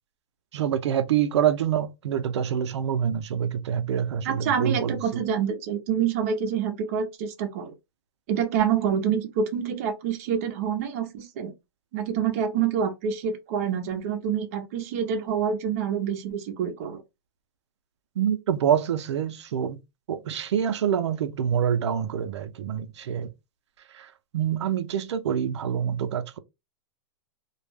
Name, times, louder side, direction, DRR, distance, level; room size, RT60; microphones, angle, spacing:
voice 1, 0.5-5.2 18.2-19.8 20.1-23.3 23.9-26.4, right 9 dB, 90° right, 0.5 m, -26 dB
voice 2, 4.2-7.7 8.3-11.5 11.9-17.0, right 7 dB, 30° right, 0.5 m, -27 dB
2.2 x 2.1 x 3.2 m
supercardioid pair, 175°, 14 cm